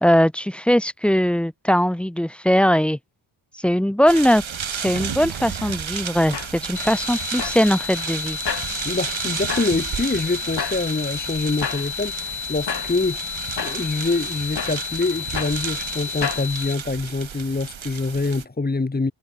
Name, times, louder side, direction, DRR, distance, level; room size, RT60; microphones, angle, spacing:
voice 1, 0.0-3.0 3.6-4.4 4.7-8.4, equal, 5° left, 0.5 m, -20 dB
sound 1, 4.1-18.5, right 7 dB, 75° right, 4.4 m, -32 dB
sound 2, 6.0-16.5, left 6 dB, 60° left, 3.4 m, -34 dB
sound 3, 6.7-16.7, left 9 dB, 80° left, 1.6 m, -32 dB
voice 2, 8.8-19.1, left 3 dB, 20° left, 1.2 m, -25 dB
cardioid pair, 75°, 46 cm